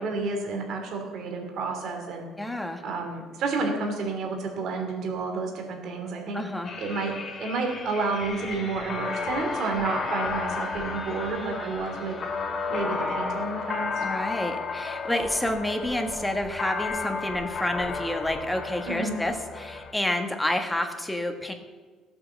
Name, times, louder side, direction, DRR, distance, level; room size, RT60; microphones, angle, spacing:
voice 1, 0.0-2.3 2.8-6.4 6.8-7.1 7.4-12.2 12.7-14.0 18.9-19.1, right 3 dB, 55° right, 2 dB, 2.9 m, -30 dB
voice 2, 2.4-2.8 6.3-6.7 14.0-21.5, left 1 dB, 5° left, 4 dB, 1.5 m, -29 dB
sound 1, 6.6-19.9, left 4 dB, 30° left, 2.6 m, -33 dB
17.0 x 8.7 x 7.4 m, 1.4 s
cardioid pair, 155°, 0 cm